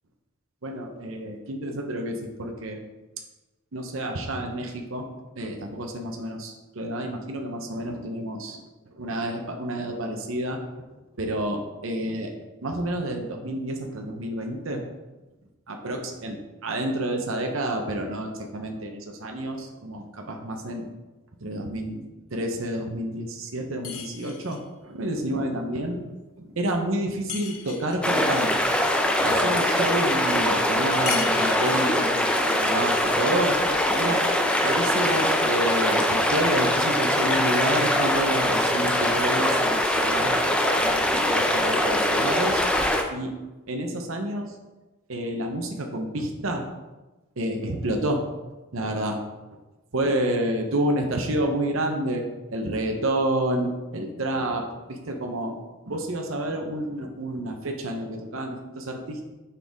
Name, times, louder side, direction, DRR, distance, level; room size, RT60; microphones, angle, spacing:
voice 1, 0.6-2.8 3.7-5.1 5.4-8.6 8.9-10.9 11.2-12.3 12.6-14.8 15.7-20.9 21.4-22.0 22.3-26.0 26.4-28.9 29.2-33.6 34.0-34.3 34.6-42.6 43.1-43.3 43.7-44.5 45.1-46.7 47.4-48.2 48.7-49.2 49.9-52.2 52.5-55.5 55.9-59.3, right 1 dB, 70° right, 3 dB, 0.8 m, -29 dB
sound 1, 23.8-24.7 27.3-28.1 31.1-32.0, left 8 dB, 85° left, 0.8 m, -36 dB
sound 2, 28.0-43.0, left 1 dB, 5° left, 0.5 m, -23 dB
6.3 x 5.5 x 3.5 m, 1.1 s
head